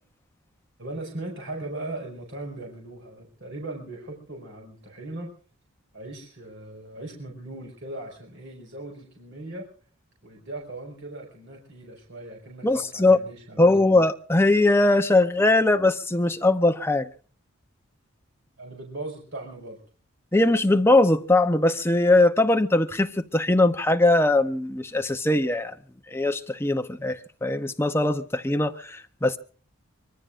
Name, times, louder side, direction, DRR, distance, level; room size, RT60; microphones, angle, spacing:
voice 1, 0.8-5.3 5.9-9.7 10.2-12.6 12.9-13.7 18.6-19.8, right 2 dB, 55° right, 5.6 m, -38 dB
voice 2, 12.6-13.2 13.6-17.1 20.3-25.7 26.1-29.4, left 2 dB, 10° left, 0.7 m, -21 dB
24.5 x 22.5 x 2.5 m
head